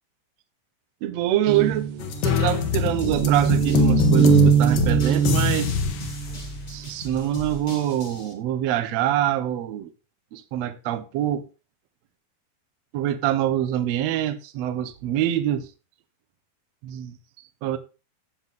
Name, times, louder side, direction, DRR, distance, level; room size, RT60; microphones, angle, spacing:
voice 1, 1.0-1.9 2.2-5.8 6.7-9.9 10.3-11.5 12.9-15.7 16.8-17.2 17.6-17.8, right 12 dB, 70° right, 1.7 m, -25 dB
sound 1, 1.5-6.7, right 9 dB, 90° right, 1.2 m, -22 dB
sound 2, 2.0-6.1, left 7 dB, 80° left, 2.9 m, -23 dB
sound 3, 3.0-8.3, left 3 dB, 55° left, 0.5 m, -38 dB
15.0 x 5.8 x 3.6 m
omnidirectional pair, 4.0 m